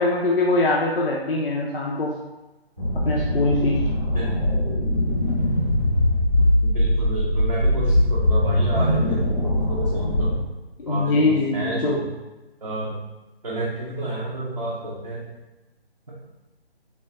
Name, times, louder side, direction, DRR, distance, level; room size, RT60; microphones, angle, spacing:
voice 1, 0.0-2.1 3.1-3.8 10.8-12.0, left 2 dB, 60° left, -3 dB, 0.5 m, -22 dB
sound 1, 2.8-10.4, left 1 dB, 15° left, 0.5 m, -21 dB
voice 2, 6.6-10.3 10.9-12.1 12.6-13.0 13.4-15.3, right 1 dB, 40° right, -6 dB, 0.5 m, -30 dB
3.3 x 2.2 x 2.6 m, 1.1 s
figure-of-eight pair, 150°, 32 cm